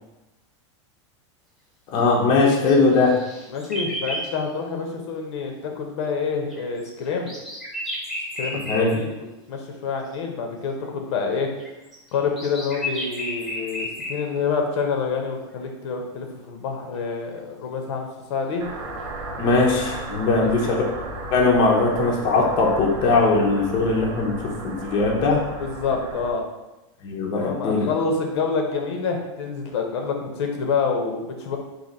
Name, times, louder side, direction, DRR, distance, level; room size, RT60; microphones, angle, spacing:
voice 1, 1.9-3.2 8.7-9.0 19.4-20.8 21.3-25.4 27.0-27.9, left 3 dB, 30° left, -2 dB, 0.7 m, -20 dB
sound 1, 2.4-4.3 6.5-8.9 10.1-10.2 11.6-14.2, left 1 dB, ahead, 1.1 m, -32 dB
voice 2, 3.5-7.3 8.4-9.2 9.5-11.5 12.1-18.6 20.2-20.5 25.6-26.4 27.3-31.6, left 5 dB, 65° left, 3 dB, 0.8 m, -27 dB
sound 2, 18.6-26.3, right 2 dB, 65° right, 1.0 m, -34 dB
4.2 x 2.8 x 3.9 m, 1.0 s
supercardioid pair, 160°, 16 cm